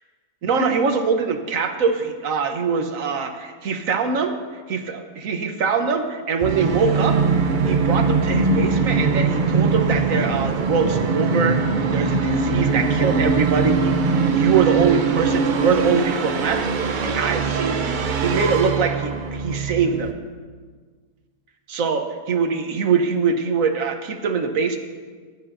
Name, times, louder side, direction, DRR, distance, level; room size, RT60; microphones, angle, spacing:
voice 1, 0.4-4.3 4.7-11.6 11.9-20.1 21.7-24.8, right 5 dB, 60° right, 5 dB, 1.3 m, -23 dB
Musical instrument, 6.4-20.1, right 4 dB, 90° right, 0.4 m, -21 dB
18.5 x 11.5 x 2.6 m, 1.6 s
omnidirectional pair, 1.7 m